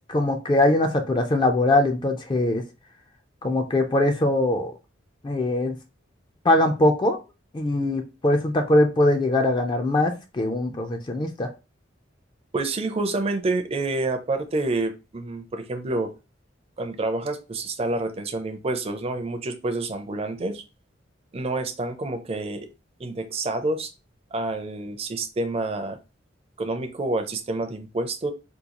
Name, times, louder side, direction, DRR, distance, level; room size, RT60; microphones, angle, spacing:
voice 1, 0.1-2.6 3.4-4.7 5.2-5.8 6.4-7.2 7.5-11.5, left 1 dB, 25° left, 5 dB, 0.4 m, -22 dB
voice 2, 12.5-16.1 16.8-20.6 21.3-22.7 23.0-23.9 24.3-26.0 26.6-28.3, right 2 dB, 35° right, 7 dB, 0.5 m, -28 dB
3.7 x 2.3 x 2.9 m, 0.29 s
head